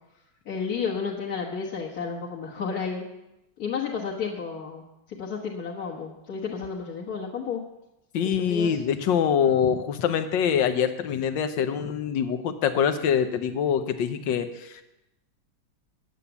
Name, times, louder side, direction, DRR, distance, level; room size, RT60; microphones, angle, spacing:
voice 1, 0.5-3.1 3.6-7.6 8.2-8.8, left 5 dB, 55° left, -4 dB, 1.8 m, -32 dB
voice 2, 8.1-14.8, left 7 dB, 75° left, 10 dB, 1.5 m, -24 dB
10.0 x 8.4 x 8.1 m, 0.93 s
omnidirectional pair, 2.1 m